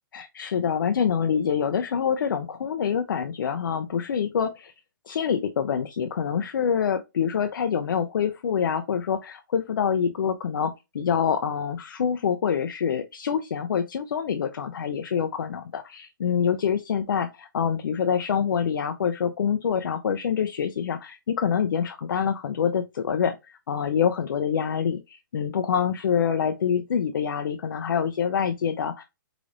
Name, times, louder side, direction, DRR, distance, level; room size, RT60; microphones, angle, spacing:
voice 1, 0.1-4.7 5.1-29.0, left 7 dB, 75° left, 0.4 m, -26 dB
3.8 x 3.3 x 2.4 m
hypercardioid pair, 150°, 11 cm